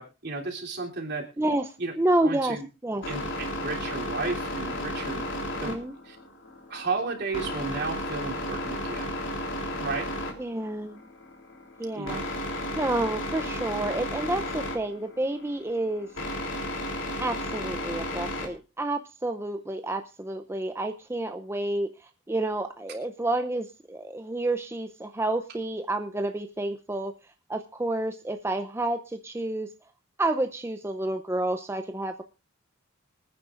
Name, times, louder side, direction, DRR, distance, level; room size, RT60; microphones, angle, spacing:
voice 1, 0.0-1.3 1.8-1.9 2.2-2.7 3.0-5.3 5.6-6.2 6.7-9.1 9.8-10.1 11.9-12.2, right 3 dB, 55° right, 0 dB, 3.2 m, -33 dB
voice 2, 1.4-3.1 5.6-5.9 10.4-11.0 11.8-12.2 12.7-16.1 17.2-27.1 27.5-29.7 30.2-32.2, right 2 dB, 15° right, 7 dB, 0.6 m, -29 dB
sound 1, 3.0-18.5, left 1 dB, 70° left, 3.5 m, -33 dB
25.5 x 9.6 x 2.5 m, 0.31 s
head